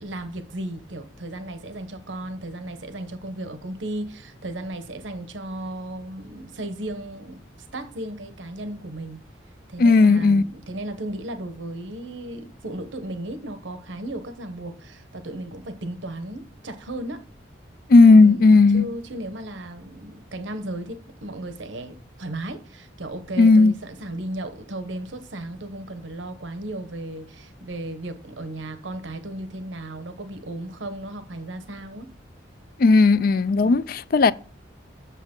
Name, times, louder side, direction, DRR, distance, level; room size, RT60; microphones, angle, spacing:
voice 1, 0.0-9.2 9.7-17.3 17.9-32.1 33.5-33.8, right 1 dB, 80° right, 1.0 m, -35 dB
voice 2, 9.8-10.4 17.9-18.8 23.4-23.7 32.8-34.3, left 3 dB, 50° left, 0.4 m, -14 dB
8.4 x 7.0 x 3.7 m
head